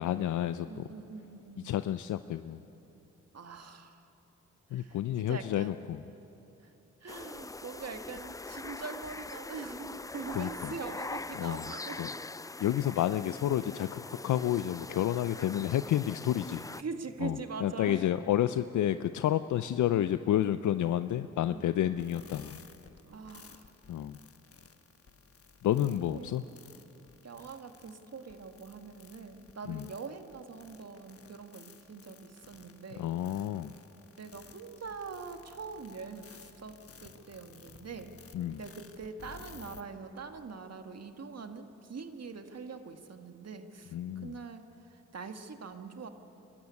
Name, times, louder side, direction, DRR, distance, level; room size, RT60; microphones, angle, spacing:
voice 1, 0.0-0.9 1.6-2.6 4.7-6.0 10.3-10.7 11.4-12.1 12.6-16.6 17.2-22.6 23.9-24.2 25.6-26.4 29.7-29.9 32.9-33.7 38.3-38.6 43.9-44.4, left 11 dB, 75° left, 12 dB, 0.5 m, -30 dB
voice 2, 0.7-1.7 3.3-4.1 4.7-5.8 6.6-6.7 7.0-12.0 16.8-18.0 21.5-22.1 23.0-23.7 25.8-26.3 27.2-33.1 34.2-38.2 38.6-43.9 44.2-44.6 45.1-46.1, right 5 dB, 55° right, 7 dB, 1.7 m, -43 dB
sound 1, 7.1-16.8, left 3 dB, 10° left, 0.4 m, -42 dB
sound 2, 22.0-39.8, left 5 dB, 50° left, 1.3 m, -55 dB
24.0 x 13.5 x 9.7 m, 3.0 s
supercardioid pair, 45°, 30 cm